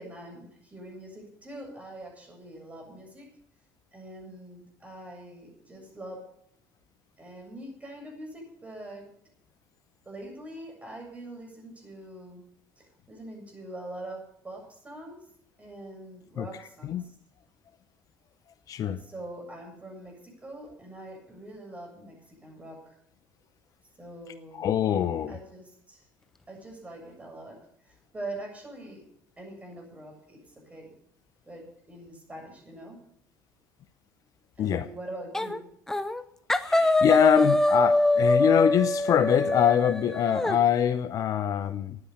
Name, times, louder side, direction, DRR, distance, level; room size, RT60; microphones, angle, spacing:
voice 1, 0.0-3.3 3.9-6.2 7.2-9.1 10.1-12.4 12.8-15.2 15.6-17.2 19.0-22.2 22.4-23.0 24.0-24.7 25.3-26.1 26.5-27.6 27.8-29.0 29.4-30.9 31.5-33.0 34.6-35.6, right 1 dB, 20° right, 0 dB, 7.3 m, -43 dB
voice 2, 18.7-19.0 24.5-25.4 34.6-34.9 36.6-42.0, left 9 dB, 50° left, 13 dB, 0.7 m, -24 dB
sound 1, 35.3-35.6 35.9-36.2 36.5-40.6, left 2 dB, 5° left, 0.8 m, -24 dB
10.0 x 9.6 x 8.5 m, 0.71 s
supercardioid pair, 85°, 7 cm